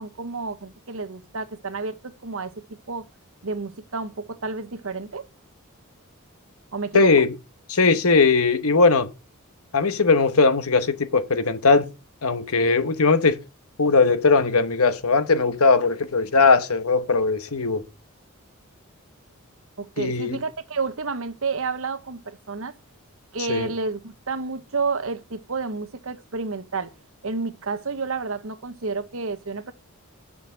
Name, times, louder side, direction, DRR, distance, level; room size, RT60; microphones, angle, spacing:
voice 1, 0.0-2.5 2.9-3.0 3.4-5.3 6.7-7.1 19.8-22.7 23.3-26.9 27.2-29.7, right 4 dB, 65° right, 1.0 m, -30 dB
voice 2, 6.9-7.3 7.7-9.1 9.7-11.9 12.2-13.4 13.8-17.8 20.0-20.4 23.5-23.7, left 4 dB, 80° left, 1.1 m, -19 dB
6.9 x 6.1 x 7.6 m
head